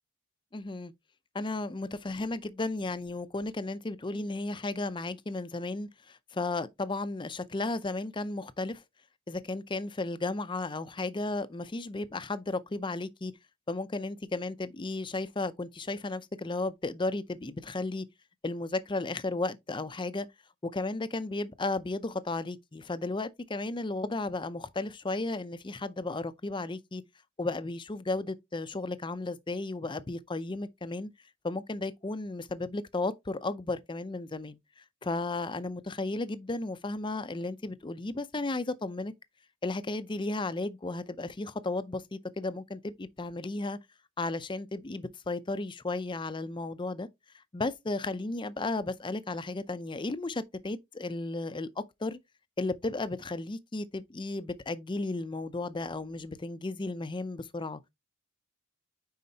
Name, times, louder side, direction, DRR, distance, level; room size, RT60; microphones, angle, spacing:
voice 1, 0.5-0.9 1.3-8.8 9.3-13.3 13.7-18.1 18.4-20.3 20.6-27.0 27.4-31.1 31.4-34.6 35.0-39.1 39.6-43.8 44.2-47.1 47.5-52.2 52.6-57.8, left 2 dB, 20° left, 0.5 m, -34 dB
9.3 x 4.3 x 2.8 m
head